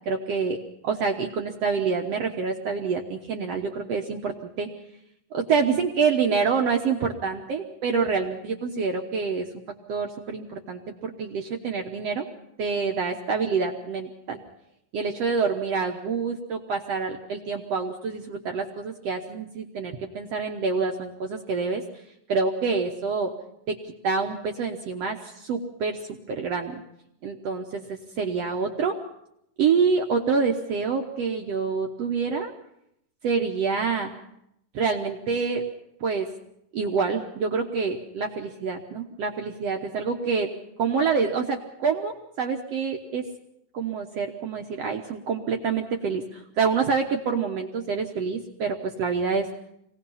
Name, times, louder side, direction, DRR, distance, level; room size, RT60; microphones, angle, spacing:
voice 1, 0.1-0.6 0.8-4.7 5.3-9.5 9.9-12.2 12.6-14.4 14.9-21.8 22.3-23.3 23.7-23.8 24.0-26.0 26.3-26.8 27.2-29.0 29.6-32.5 33.2-34.1 34.7-35.6 36.0-36.3 36.7-40.5 40.8-43.2 43.7-49.5, right 5 dB, 65° right, 2 dB, 1.7 m, -27 dB
24.5 x 18.5 x 5.6 m, 0.77 s
omnidirectional pair, 4.2 m